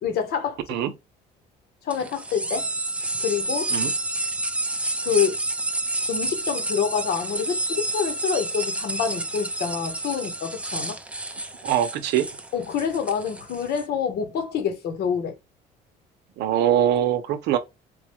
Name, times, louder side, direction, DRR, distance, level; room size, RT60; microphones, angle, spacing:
voice 1, 0.0-0.6 1.8-2.7 3.2-3.7 5.0-5.4 6.1-11.0 12.5-15.3, left 7 dB, 70° left, 1.3 m, -27 dB
sound 1, 1.9-13.8, right 2 dB, 5° right, 0.5 m, -29 dB
voice 2, 11.6-12.3 16.4-17.6, right 10 dB, 85° right, 0.7 m, -22 dB
4.0 x 2.3 x 3.0 m
cardioid pair, 110°, 17 cm